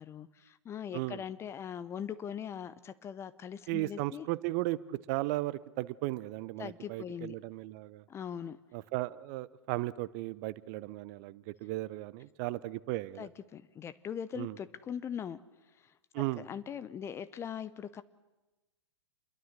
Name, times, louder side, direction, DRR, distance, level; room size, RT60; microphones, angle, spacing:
voice 1, 0.0-4.3 6.6-7.3 8.1-8.6 13.2-15.4 15.8-15.9 16.4-18.0, left 8 dB, 15° left, 14 dB, 0.7 m, -41 dB
voice 2, 3.7-8.0 8.7-13.3 14.4-14.5 16.1-16.4, right 18 dB, 35° right, 18 dB, 0.8 m, -36 dB
27.5 x 22.0 x 6.7 m, 1.1 s
figure-of-eight pair, 105°, 15 cm